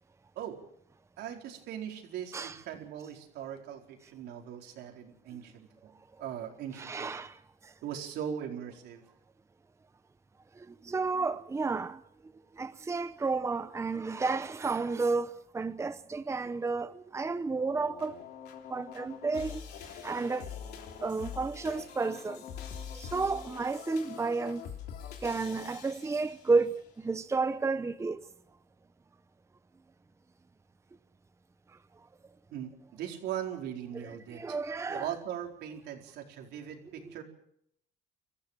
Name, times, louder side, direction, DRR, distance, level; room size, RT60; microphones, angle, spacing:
voice 1, 1.2-5.9 6.2-7.2 7.8-9.0 32.5-34.6 34.9-37.2, right 9 dB, 80° right, 4.4 m, -40 dB
voice 2, 6.8-7.7 10.6-12.0 12.6-18.2 18.7-19.6 19.9-20.5 21.0-22.4 22.9-24.6 25.2-28.3 34.0-35.1, right 4 dB, 15° right, 0.8 m, -32 dB
sound 1, 17.5-26.7, left 8 dB, 75° left, 3.3 m, -44 dB
25.5 x 14.5 x 7.4 m
cardioid pair, 110°, 17 cm